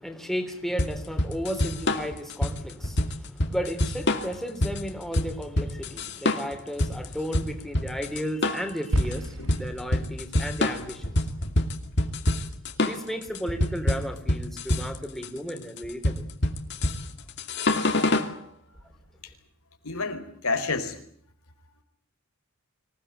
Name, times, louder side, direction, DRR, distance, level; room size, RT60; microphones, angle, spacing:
voice 1, 0.0-11.3 12.8-16.3, equal, ahead, 3.4 m, -34 dB
sound 1, 0.8-18.3, left 1 dB, 50° left, 2.5 m, -26 dB
sound 2, 8.9-13.3, right 1 dB, 60° right, 1.4 m, -36 dB
voice 2, 19.8-21.0, left 3 dB, 90° left, 4.3 m, -29 dB
25.5 x 17.5 x 9.1 m
head